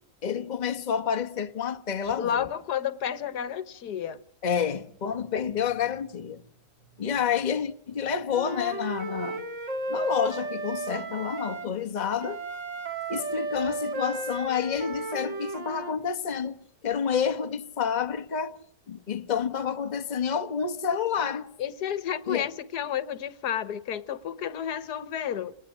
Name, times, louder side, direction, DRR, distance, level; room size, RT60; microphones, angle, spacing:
voice 1, 0.2-2.5 4.4-6.4 7.0-9.4 9.9-12.4 13.1-16.6 16.8-18.6 18.9-21.5 22.3-22.5, left 7 dB, 30° left, 1.1 m, -29 dB
voice 2, 2.2-4.2 21.6-25.6, left 9 dB, 85° left, 1.6 m, -31 dB
Wind instrument woodwind instrument, 8.3-11.7 12.2-16.0, right 2 dB, 50° right, 1.9 m, -34 dB
29.5 x 19.0 x 6.2 m
omnidirectional pair, 1.7 m